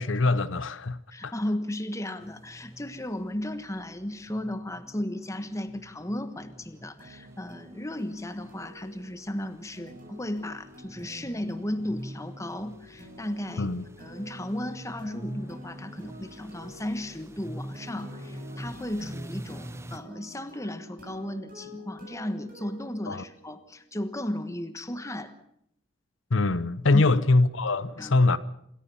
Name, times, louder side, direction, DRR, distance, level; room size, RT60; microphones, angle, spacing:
voice 1, 0.0-1.3 13.6-13.8 23.1-23.2 26.3-28.4, left 2 dB, 85° left, 0.8 m, -23 dB
voice 2, 1.1-13.7 14.0-25.3 26.9-27.0 28.0-28.2, left 1 dB, 15° left, 1.3 m, -35 dB
sound 1, 2.2-20.0, equal, 15° right, 0.7 m, -45 dB
Pretty Pluck Sound, 7.0-23.7, equal, 45° right, 7.4 m, -49 dB
27.0 x 14.0 x 7.1 m
head